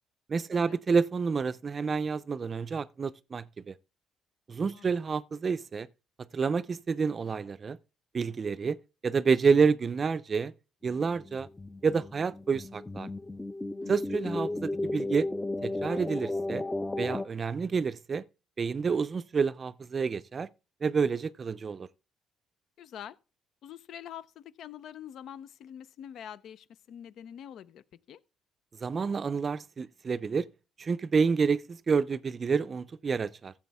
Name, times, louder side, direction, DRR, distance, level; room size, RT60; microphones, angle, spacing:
voice 1, 0.3-3.7 4.5-5.9 6.3-7.8 8.1-8.8 9.0-10.5 10.8-11.5 11.8-13.1 13.9-15.3 15.6-16.6 17.0-18.2 18.6-20.5 20.8-21.9 28.8-30.5 30.8-33.5, right 5 dB, 35° right, 0.5 m, -28 dB
sound 1, 10.9-17.2, left 2 dB, 10° left, 0.6 m, -34 dB
voice 2, 13.8-14.2 22.8-23.2 23.6-28.2, left 9 dB, 70° left, 0.6 m, -45 dB
15.0 x 7.5 x 3.5 m
cardioid pair, 105°, 0 cm